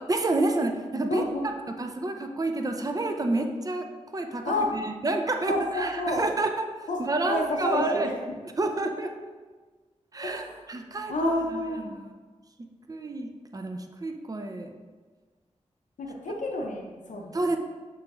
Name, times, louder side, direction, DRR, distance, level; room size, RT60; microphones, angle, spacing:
voice 1, 0.1-1.2 1.8-4.4 4.7-6.7 7.0-8.1 8.6-9.1 10.1-12.1 12.9-14.7 17.3-17.6, right 2 dB, 30° right, 5 dB, 0.5 m, -29 dB
voice 2, 1.1-1.5 4.4-4.7 5.5-6.3 6.9-8.1 10.2-10.6 11.1-11.9 16.0-17.3, left 1 dB, 85° left, 0 dB, 0.6 m, -29 dB
6.5 x 3.0 x 2.3 m, 1.4 s
cardioid pair, 45°, 13 cm